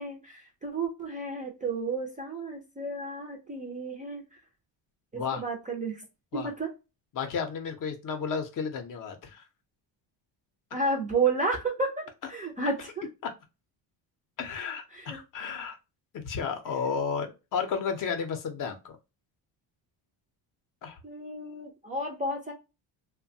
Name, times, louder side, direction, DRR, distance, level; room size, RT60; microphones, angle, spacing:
voice 1, 0.0-4.2 5.1-6.0 6.3-6.7 10.7-13.1 14.9-15.2 16.8-17.0 21.0-22.5, right 3 dB, 20° right, 0 dB, 0.4 m, -32 dB
voice 2, 7.1-9.4 14.4-15.8 16.1-19.0 20.8-21.0, left 6 dB, 45° left, 6 dB, 0.6 m, -32 dB
3.0 x 2.2 x 2.6 m, 0.26 s
cardioid pair, 165°, 47 cm